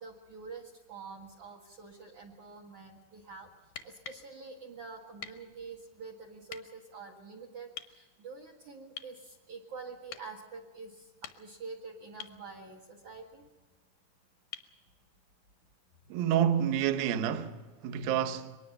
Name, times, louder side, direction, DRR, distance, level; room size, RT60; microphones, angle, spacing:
voice 1, 0.0-3.5 3.8-13.5, right 4 dB, 55° right, 2.3 m, -47 dB
sound 1, 3.7-4.3 5.2-5.4 6.5-6.6 7.8-8.0 9.0-9.2 10.1-10.3 11.0-11.7 12.2-12.4 14.5-14.8 16.6-16.7, left 9 dB, 80° left, 1.9 m, -45 dB
voice 2, 16.1-18.6, right 9 dB, 80° right, 2.1 m, -29 dB
24.0 x 20.5 x 5.7 m
omnidirectional pair, 5.9 m